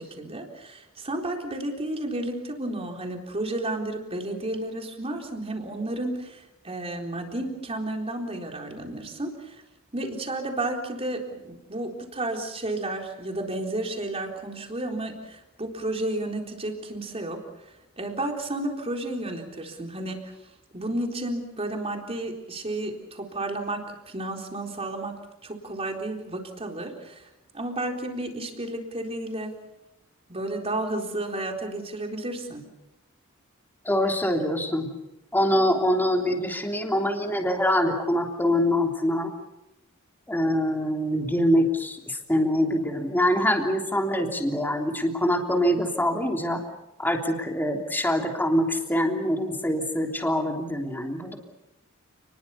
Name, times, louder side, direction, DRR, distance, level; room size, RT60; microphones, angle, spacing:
voice 1, 0.0-9.6 9.9-17.4 18.0-20.3 20.7-27.3 27.5-29.5 30.3-32.6, right 1 dB, 30° right, 3 dB, 4.0 m, -32 dB
voice 2, 33.8-34.9 35.3-39.3 40.3-46.6 47.0-51.4, equal, 10° left, 2 dB, 3.3 m, -24 dB
30.0 x 21.0 x 7.0 m, 0.93 s
head